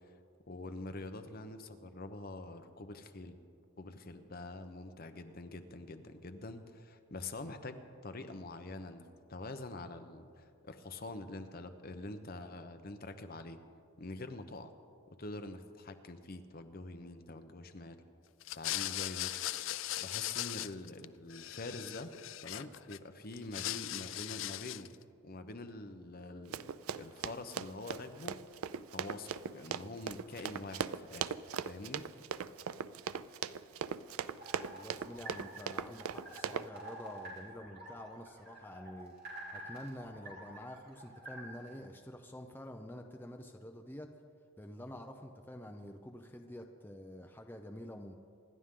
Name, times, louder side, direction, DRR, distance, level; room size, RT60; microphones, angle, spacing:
voice 1, 0.5-3.4 3.8-13.6 14.0-14.7 15.2-18.0 18.6-19.3 20.0-22.1 22.4-24.9 25.2-26.7 27.0-28.4 28.9-31.4 31.6-32.0, left 2 dB, 45° left, 8 dB, 0.9 m, -45 dB
sound 1, 18.4-21.0 21.3-23.0 23.3-24.9, left 14 dB, 65° left, 0.4 m, -39 dB
Run, 26.5-36.7, right 7 dB, 85° right, 0.4 m, -39 dB
sound 2, 34.4-41.8, right 1 dB, 50° right, 3.2 m, -49 dB
voice 2, 34.7-39.1 39.5-44.1 44.6-48.2, left 1 dB, 10° left, 3 dB, 0.6 m, -48 dB
26.5 x 11.5 x 3.8 m, 2.3 s
head